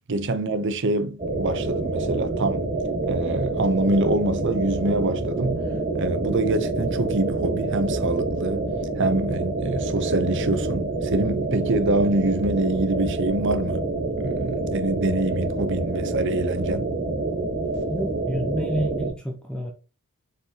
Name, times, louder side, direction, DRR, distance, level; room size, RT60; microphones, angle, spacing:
voice 1, 0.1-2.7 3.0-5.6 5.9-8.7 9.0-13.9 14.2-16.9, right 2 dB, 55° right, 0.7 m, -25 dB
sound 1, 1.2-19.1, right 2 dB, 40° right, 1.3 m, -27 dB
voice 2, 17.9-19.7, right 1 dB, 5° left, 0.7 m, -29 dB
7.1 x 4.8 x 2.9 m
head